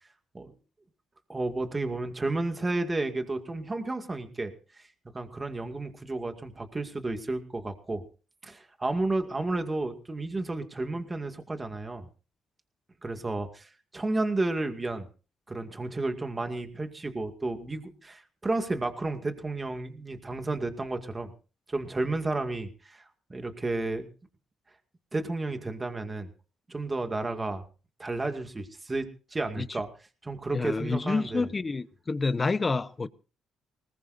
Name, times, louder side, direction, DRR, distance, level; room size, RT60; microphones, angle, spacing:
voice 1, 1.3-4.9 5.1-8.0 8.4-12.1 13.0-15.1 15.5-21.3 21.7-24.1 25.1-26.3 26.7-27.6 28.0-29.9 30.2-31.5, right 2 dB, 20° right, 2.1 m, -32 dB
voice 2, 30.5-33.1, left 3 dB, 30° left, 0.9 m, -28 dB
20.0 x 19.5 x 2.6 m
cardioid pair, 90°, 0 cm